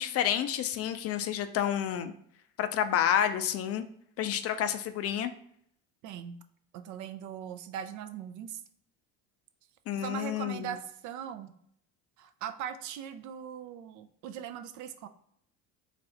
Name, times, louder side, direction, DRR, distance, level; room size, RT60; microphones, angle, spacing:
voice 1, 0.0-2.1 2.6-3.8 4.2-5.3 9.9-10.7, left 10 dB, 45° left, 10 dB, 0.4 m, -29 dB
voice 2, 6.0-6.4 6.7-8.6 9.9-11.5 12.2-15.1, right 9 dB, 60° right, 8 dB, 0.5 m, -40 dB
3.2 x 2.5 x 3.7 m, 0.67 s
supercardioid pair, 80°, 34 cm